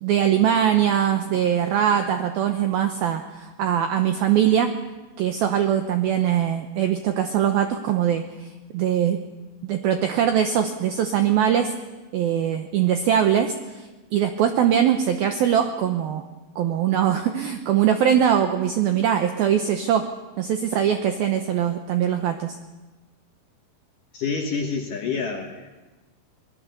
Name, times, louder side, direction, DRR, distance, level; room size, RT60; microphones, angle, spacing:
voice 1, 0.0-4.7 5.2-9.2 9.6-11.7 12.1-16.3 16.6-20.1 20.4-22.6, right 9 dB, 80° right, 6 dB, 2.1 m, -22 dB
voice 2, 24.1-25.7, left 5 dB, 65° left, 2 dB, 2.2 m, -28 dB
25.0 x 19.5 x 6.9 m, 1.2 s
omnidirectional pair, 5.6 m